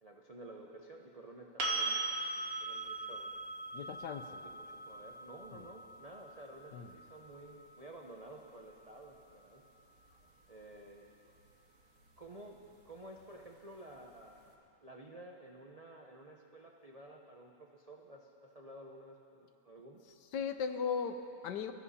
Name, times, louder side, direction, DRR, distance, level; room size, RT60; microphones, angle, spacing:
voice 1, 0.0-2.1 2.4-3.4 4.4-9.6 10.5-11.1 12.2-12.6 12.8-20.0, right 1 dB, 55° right, 0 dB, 0.4 m, -52 dB
sound 1, 1.6-9.4 12.2-12.3, right 3 dB, 85° right, 2.4 m, -40 dB
voice 2, 3.7-4.4 5.5-5.7 6.7-7.0 20.3-21.7, left 6 dB, 65° left, 8 dB, 1.3 m, -37 dB
22.0 x 14.0 x 4.2 m, 2.7 s
omnidirectional pair, 2.1 m